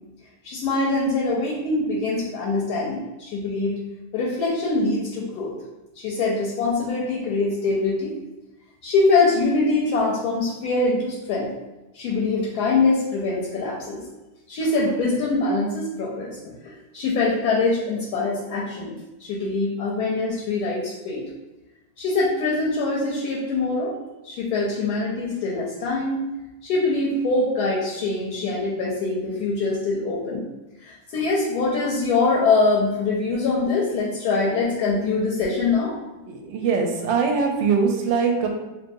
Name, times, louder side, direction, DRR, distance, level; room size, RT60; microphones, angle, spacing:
voice 1, 0.4-3.8 4.1-5.6 6.0-8.2 8.8-11.5 11.9-14.0 14.5-18.9 19.2-21.3 22.0-23.9 24.2-26.2 26.6-30.4 30.8-35.9, left 3 dB, 70° left, -3 dB, 1.0 m, -23 dB
voice 2, 36.3-38.5, right 5 dB, 90° right, 2 dB, 1.3 m, -22 dB
3.1 x 2.8 x 2.6 m, 1.1 s
omnidirectional pair, 2.0 m